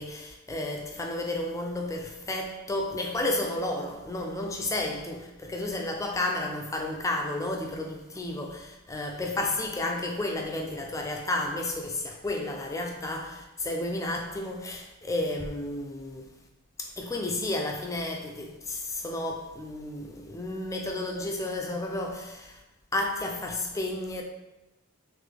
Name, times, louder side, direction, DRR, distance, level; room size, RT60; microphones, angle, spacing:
voice 1, 0.0-16.3 16.8-22.6 22.9-24.2, left 1 dB, 15° left, 0.4 m, -32 dB
3.8 x 3.1 x 3.4 m
head